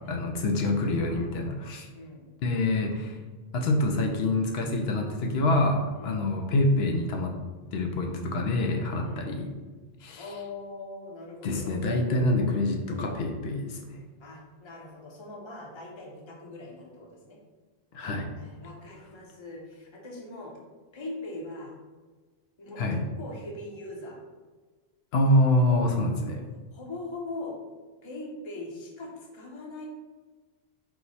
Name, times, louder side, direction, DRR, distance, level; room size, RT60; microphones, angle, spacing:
voice 1, 0.0-1.9 2.4-3.2 3.5-7.4 7.7-9.5 10.0-10.2 11.4-13.9 17.9-18.3 22.8-23.0 25.1-26.4, left 1 dB, 80° left, 2 dB, 0.8 m, -26 dB
voice 2, 1.9-2.3 5.9-6.3 9.0-9.3 10.2-12.1 14.2-17.4 18.4-20.5 20.9-21.7 22.6-24.2 25.6-25.9 26.7-27.6 28.0-29.9, left 2 dB, 30° left, -1 dB, 0.7 m, -41 dB
4.6 x 2.1 x 4.0 m, 1.4 s
omnidirectional pair, 1.1 m